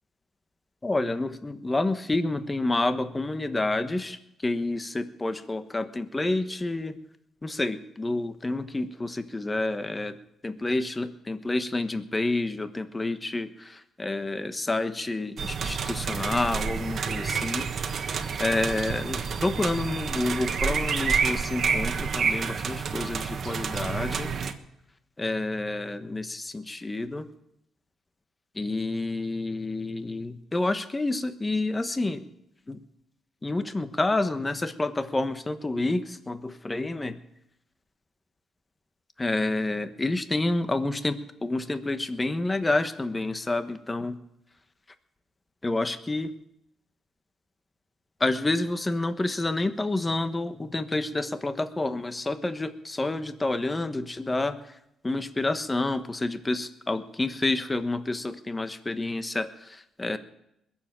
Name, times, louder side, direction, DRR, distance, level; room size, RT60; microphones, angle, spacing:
voice 1, 0.8-4.2 4.4-7.0 7.4-10.2 10.4-17.7 18.0-24.3 25.2-27.3 28.5-32.2 32.7-32.8 33.4-37.2 39.2-44.2 45.6-46.3 48.2-54.7 55.0-60.2, left 2 dB, 20° left, 10 dB, 1.2 m, -29 dB
sound 1, 15.4-24.5, right 6 dB, 50° right, 1.3 m, -29 dB
21.0 x 7.4 x 9.0 m, 0.81 s
cardioid pair, 90°, 0 cm